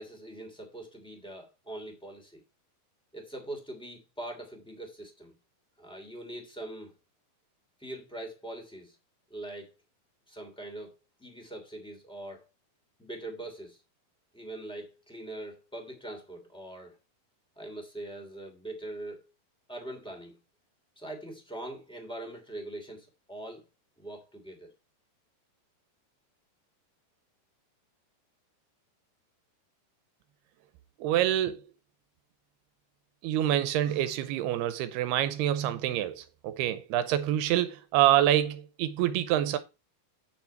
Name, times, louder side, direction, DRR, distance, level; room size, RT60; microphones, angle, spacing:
voice 1, 0.0-2.4 3.1-5.3 5.8-6.9 7.8-8.9 9.3-9.7 10.3-10.9 11.2-12.4 13.0-13.8 14.3-16.9 17.6-19.3 19.7-20.4 21.0-23.6 24.0-24.7, right 1 dB, ahead, 2.1 m, -42 dB
voice 2, 31.0-31.6 33.2-39.6, right 12 dB, 80° right, 2.7 m, -26 dB
9.2 x 6.0 x 4.4 m
omnidirectional pair, 4.7 m